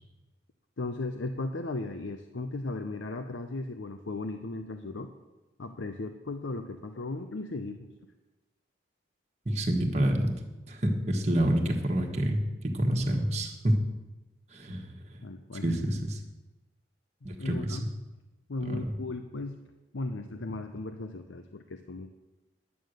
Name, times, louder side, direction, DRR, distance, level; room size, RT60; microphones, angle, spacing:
voice 1, 0.8-5.1 5.6-7.9 15.2-15.8 17.2-17.9 18.5-19.6 19.9-22.1, left 2 dB, 75° left, 7 dB, 0.7 m, -36 dB
voice 2, 9.4-10.3 10.7-12.4 12.6-13.8 14.5-15.2 15.6-16.2 17.2-17.8 18.6-18.8, right 1 dB, 35° right, 1 dB, 1.4 m, -28 dB
11.0 x 9.3 x 6.6 m, 1.1 s
head